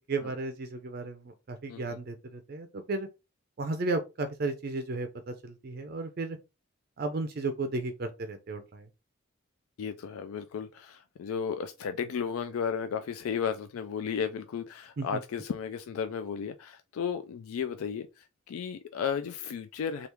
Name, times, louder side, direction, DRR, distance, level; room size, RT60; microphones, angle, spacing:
voice 1, 0.1-1.2 1.5-3.1 3.6-6.4 7.0-8.9 15.0-15.2, right 3 dB, 45° right, 0.4 m, -34 dB
voice 2, 9.8-20.1, left 7 dB, 85° left, 0.3 m, -34 dB
3.4 x 2.4 x 2.9 m
head